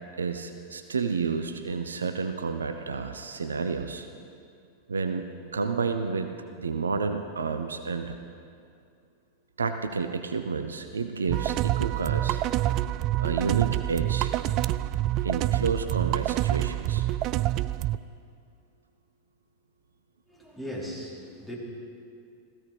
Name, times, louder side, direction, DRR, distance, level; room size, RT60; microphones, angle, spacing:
voice 1, 0.2-4.1 4.9-6.3 6.6-8.2 9.6-12.4 13.2-14.4 15.2-17.1, right 5 dB, 70° right, 8 dB, 0.8 m, -30 dB
sound 1, 11.3-18.0, right 14 dB, 40° right, 0.4 m, -27 dB
voice 2, 20.3-21.5, equal, ahead, -7 dB, 4.8 m, -38 dB
17.0 x 15.0 x 5.3 m, 2.4 s
figure-of-eight pair, 90°, 0 cm